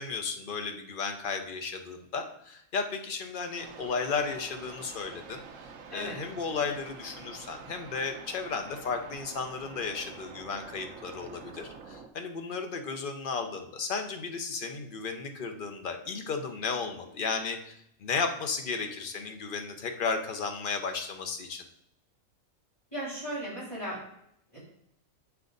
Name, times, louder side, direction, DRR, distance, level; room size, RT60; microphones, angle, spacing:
voice 1, 0.0-5.4 5.9-17.7 18.0-21.6, left 5 dB, 45° left, 5 dB, 0.9 m, -34 dB
sound 1, 3.6-12.1, right 5 dB, 75° right, 1.1 m, -47 dB
voice 2, 22.9-24.0 24.5-24.6, right 1 dB, 20° left, -10 dB, 3.3 m, -36 dB
7.5 x 5.8 x 3.9 m, 0.74 s
omnidirectional pair, 1.4 m